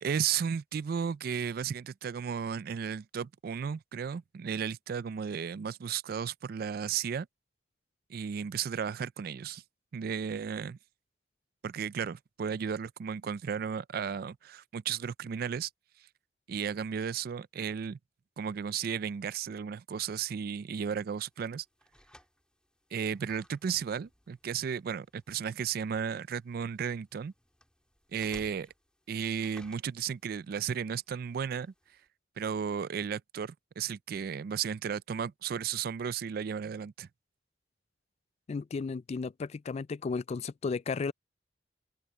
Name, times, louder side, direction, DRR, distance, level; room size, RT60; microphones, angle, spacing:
voice 1, 0.0-7.3 8.1-9.6 9.9-10.8 11.6-15.7 16.5-18.0 18.4-21.6 22.9-27.3 28.1-28.7 29.1-31.7 32.4-37.1, right 7 dB, 55° right, 0.4 m, -34 dB
sound 1, 20.1-32.1, left 1 dB, 5° left, 3.1 m, -62 dB
voice 2, 38.5-41.1, left 4 dB, 35° left, 0.3 m, -34 dB
open air
head